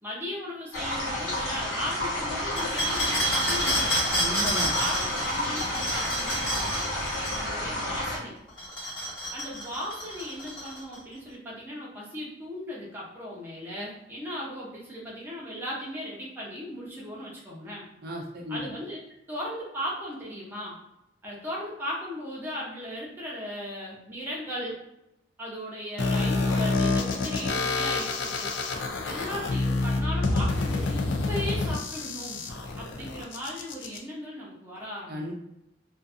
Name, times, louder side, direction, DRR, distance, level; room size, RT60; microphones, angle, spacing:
voice 1, 0.0-3.9 4.7-6.9 7.3-8.3 9.3-17.8 18.5-19.0 19.3-20.8 21.2-24.8 25.4-28.5 29.0-32.4 32.8-35.3, equal, 10° right, -6 dB, 0.6 m, -37 dB
sound 1, 0.7-8.2, left 1 dB, 85° left, 1.0 m, -31 dB
sound 2, 2.6-7.4 8.5-11.0, equal, 25° left, 1.2 m, -29 dB
voice 2, 4.2-4.7 18.0-18.7 35.1-35.3, equal, 55° right, -2 dB, 0.5 m, -34 dB
sound 3, 26.0-34.0, left 3 dB, 70° left, 0.4 m, -28 dB
2.5 x 2.4 x 2.5 m, 0.87 s
head